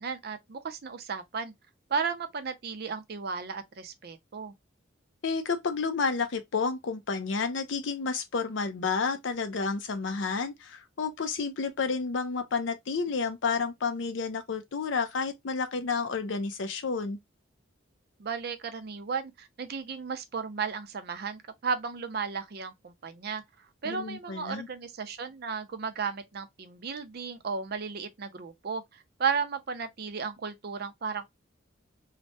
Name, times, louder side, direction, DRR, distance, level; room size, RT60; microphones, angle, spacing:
voice 1, 0.0-1.5 1.9-4.5 18.2-23.4 23.8-31.3, right 5 dB, 50° right, 0.5 m, -34 dB
voice 2, 5.2-17.2 23.8-24.7, left 4 dB, 70° left, 0.5 m, -30 dB
3.1 x 2.1 x 2.6 m
head